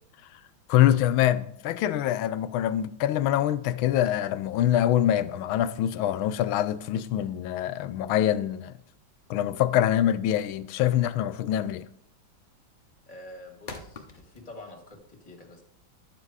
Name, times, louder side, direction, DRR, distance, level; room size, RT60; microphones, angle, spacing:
voice 1, 0.7-8.7 9.3-11.9, left 12 dB, 90° left, 1.4 m, -24 dB
sound 1, 8.6-14.9, left 3 dB, 45° left, 0.6 m, -48 dB
voice 2, 13.1-15.6, left 1 dB, 20° left, 1.8 m, -46 dB
11.5 x 7.6 x 4.8 m
omnidirectional pair, 2.2 m